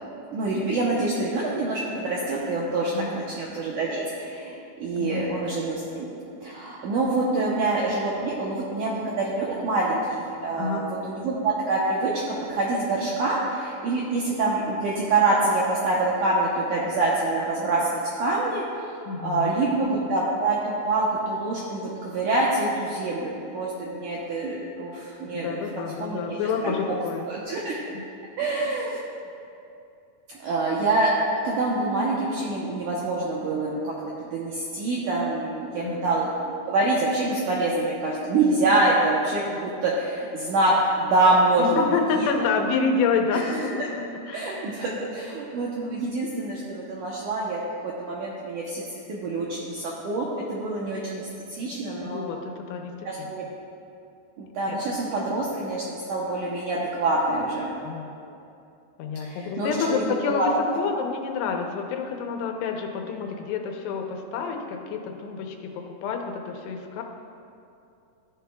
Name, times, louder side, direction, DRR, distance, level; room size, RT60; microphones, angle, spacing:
voice 1, 0.1-6.1 6.4-25.6 26.0-26.4 26.6-26.9 27.3-27.8 28.4-29.0 30.4-31.1 31.4-33.9 34.2-36.3 36.7-42.0 42.4-42.5 43.3-43.9 44.3-52.3 53.0-53.5 54.4-57.7 59.2-60.5, right 2 dB, 80° right, -4 dB, 1.8 m, -26 dB
voice 2, 5.0-5.3 10.6-10.9 19.1-19.7 24.0-24.1 25.3-27.3 27.9-28.0 35.8-36.1 41.6-43.8 44.3-44.5 52.0-53.3 54.7-54.8 57.8-58.3 59.0-67.0, left 5 dB, 90° left, 3 dB, 2.9 m, -28 dB
14.0 x 10.0 x 2.3 m, 2.6 s
omnidirectional pair, 4.7 m